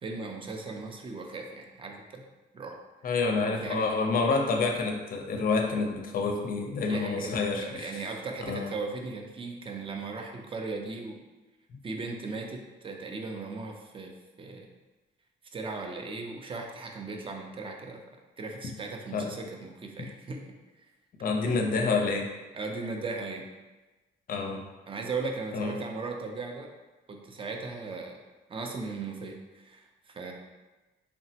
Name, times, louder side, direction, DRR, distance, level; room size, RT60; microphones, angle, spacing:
voice 1, 0.0-2.3 2.5-2.8 3.4-3.9 6.9-11.2 11.8-14.1 14.4-14.7 15.5-18.0 18.4-20.5 22.5-23.4 24.9-26.7 27.1-28.2 28.5-30.3, right 3 dB, 25° right, 2 dB, 0.4 m, -37 dB
voice 2, 3.0-7.9 8.5-8.7 19.1-19.3 20.0-20.1 21.2-22.3 24.3-24.6 25.5-25.8, left 4 dB, 45° left, 2 dB, 0.5 m, -28 dB
3.2 x 2.0 x 2.7 m, 1.2 s
cardioid pair, 90°, 20 cm